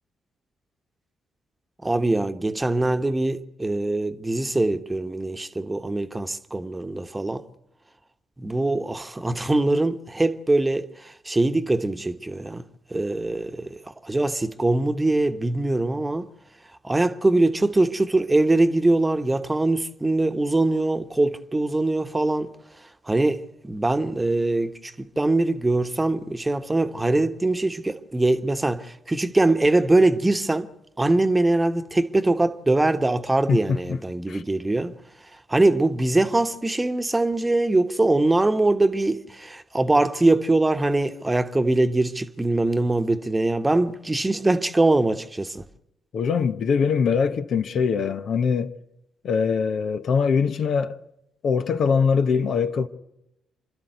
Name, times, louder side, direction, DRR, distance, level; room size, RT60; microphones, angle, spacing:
voice 1, 1.8-7.4 8.4-12.6 12.9-13.7 14.0-16.3 16.8-22.5 23.1-30.7 31.0-34.9 35.5-45.6, right 2 dB, 20° right, 1.2 m, -22 dB
voice 2, 33.5-34.0 34.3-34.4 46.1-48.7 49.2-51.0 51.4-52.9, left 6 dB, 60° left, 1.0 m, -22 dB
28.0 x 12.5 x 8.0 m
hypercardioid pair, 40°, 0 cm